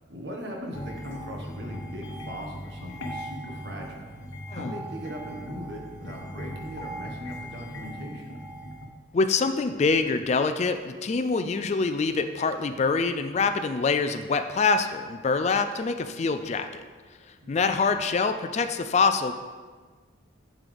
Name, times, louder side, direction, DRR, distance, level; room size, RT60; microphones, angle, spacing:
voice 1, 0.1-4.1 4.5-8.3 17.4-17.6, equal, 60° right, 0 dB, 1.4 m, -39 dB
sound 1, 0.7-8.9, equal, 75° left, 0.9 m, -39 dB
voice 2, 9.1-16.8 17.5-19.3, left 4 dB, 35° left, 9 dB, 0.3 m, -25 dB
7.5 x 7.4 x 3.5 m, 1.4 s
head